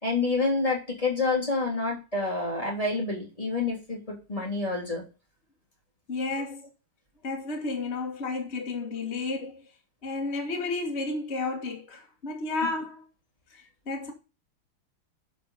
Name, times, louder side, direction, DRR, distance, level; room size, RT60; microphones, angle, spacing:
voice 1, 0.0-5.0, left 3 dB, 15° left, 3.4 m, -28 dB
voice 2, 6.1-6.7 7.2-9.7 10.0-13.1 13.9-14.1, left 3 dB, 30° left, 1.9 m, -32 dB
11.0 x 5.2 x 5.6 m
omnidirectional pair, 2.3 m